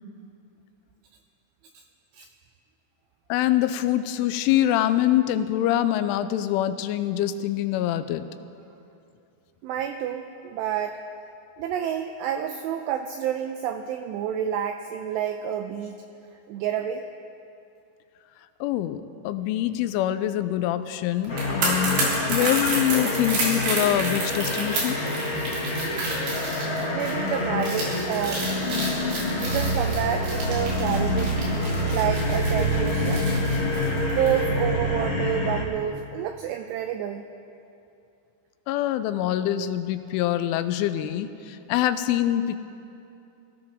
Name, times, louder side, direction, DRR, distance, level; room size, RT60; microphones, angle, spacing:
voice 1, 3.3-8.2 18.6-25.0 38.7-42.6, left 12 dB, 90° left, 11 dB, 3.1 m, -25 dB
voice 2, 9.6-11.0 11.6-16.0 16.5-17.0 22.4-22.5 26.9-28.5 29.4-31.4 31.9-33.3 34.1-37.2, right 10 dB, 90° right, 6 dB, 2.4 m, -29 dB
sound 1, 21.2-34.4 34.7-34.9, right 2 dB, 60° right, 5.2 m, -30 dB
sound 2, 21.3-35.6, left 1 dB, 40° left, 1.9 m, -27 dB
24.5 x 16.5 x 3.6 m, 2.7 s
omnidirectional pair, 5.6 m